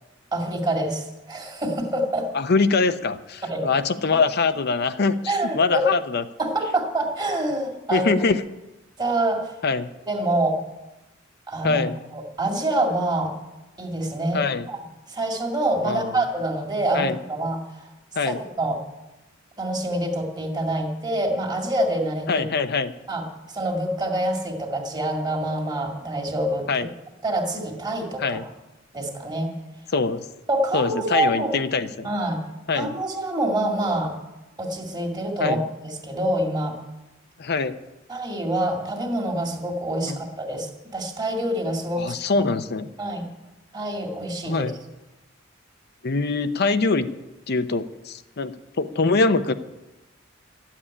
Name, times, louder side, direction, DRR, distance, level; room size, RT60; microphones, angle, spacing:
voice 1, 0.3-2.3 3.4-3.7 5.3-5.8 6.4-8.1 9.0-9.5 10.1-10.6 11.5-11.8 12.1-13.4 13.8-14.8 15.1-17.9 18.3-18.8 19.6-22.5 23.1-26.7 27.2-28.4 28.9-29.5 30.5-31.5 32.0-32.4 32.7-34.2 34.6-36.8 38.1-42.5 43.0-43.3 43.7-44.6, right 1 dB, 20° right, 2 dB, 2.1 m, -26 dB
voice 2, 2.3-6.2 7.9-8.4 9.6-9.9 11.6-12.0 14.3-14.7 15.8-16.2 16.9-17.2 18.1-18.4 22.3-22.9 26.7-26.9 28.2-28.4 29.9-30.3 30.7-32.1 32.7-33.0 35.4-35.6 37.4-37.8 40.1-40.2 42.0-42.9 44.4-44.7 46.0-47.1 47.5-49.5, left 4 dB, 55° left, 11 dB, 0.7 m, -23 dB
13.5 x 7.4 x 10.0 m, 1.0 s
head